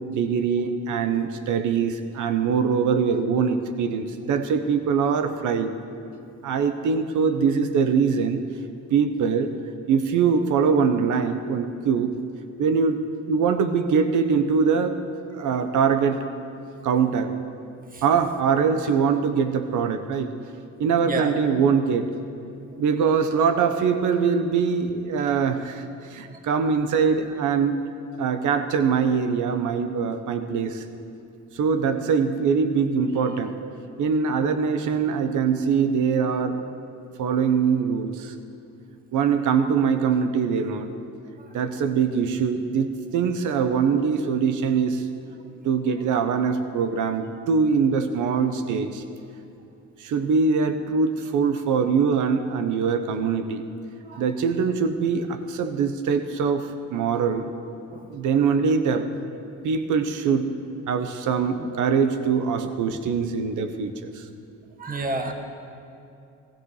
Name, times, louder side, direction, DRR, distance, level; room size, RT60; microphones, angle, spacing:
voice 1, 0.1-5.7 6.4-8.4 8.9-9.5 9.9-12.1 12.6-13.0 13.3-15.0 15.3-16.2 16.8-17.3 18.0-20.3 20.8-22.1 22.8-27.8 28.2-30.8 31.5-33.5 34.0-36.6 37.2-38.3 39.1-40.9 41.5-45.0 45.6-49.0 50.0-53.6 54.2-57.5 58.1-59.1 59.6-60.5 60.9-64.2, right 6 dB, 80° right, 9 dB, 1.1 m, -23 dB
voice 2, 64.8-65.3, right 3 dB, 30° right, 4 dB, 1.7 m, -30 dB
16.5 x 16.0 x 5.0 m, 2.6 s
cardioid pair, 90°, 30 cm